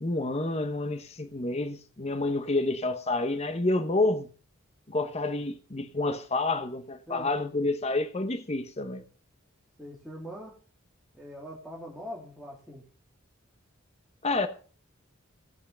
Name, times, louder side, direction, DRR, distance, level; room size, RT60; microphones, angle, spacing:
voice 1, 0.0-4.3 4.9-9.0 14.2-14.5, left 2 dB, 30° left, 1.0 m, -29 dB
voice 2, 9.8-10.6 11.1-12.8, equal, ahead, 2.4 m, -42 dB
17.5 x 6.4 x 5.7 m
head